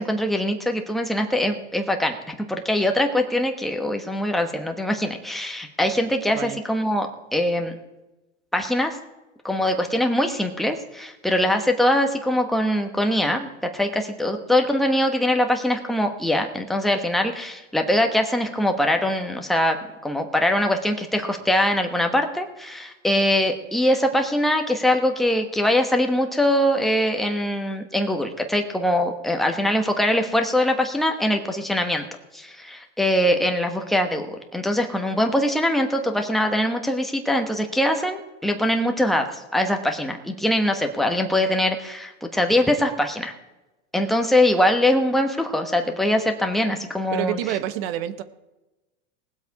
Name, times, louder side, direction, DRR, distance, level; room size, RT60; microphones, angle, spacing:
voice 1, 0.0-7.7 8.5-9.0 9.4-19.8 20.0-32.0 32.3-43.3 43.9-47.4, left 1 dB, ahead, 4 dB, 1.2 m, -22 dB
voice 2, 6.3-6.6 47.1-48.2, right 12 dB, 55° right, 13 dB, 1.1 m, -28 dB
20.0 x 7.9 x 4.7 m, 1.0 s
supercardioid pair, 130°, 36 cm